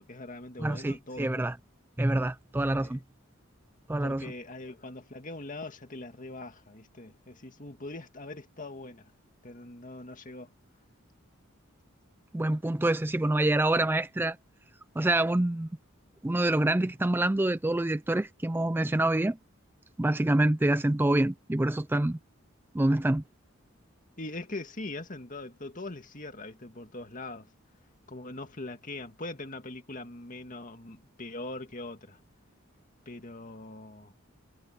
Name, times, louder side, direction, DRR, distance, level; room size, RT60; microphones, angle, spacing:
voice 1, 0.0-1.5 2.8-3.0 4.0-9.1 9.4-10.5 13.2-13.3 24.2-27.5 28.1-32.2 33.1-34.1, left 2 dB, 40° left, 2.2 m, -42 dB
voice 2, 0.6-1.6 2.0-3.0 3.9-4.2 12.3-14.4 15.0-15.7 16.2-19.4 20.0-22.2 22.7-23.2, right 1 dB, 10° right, 0.4 m, -26 dB
head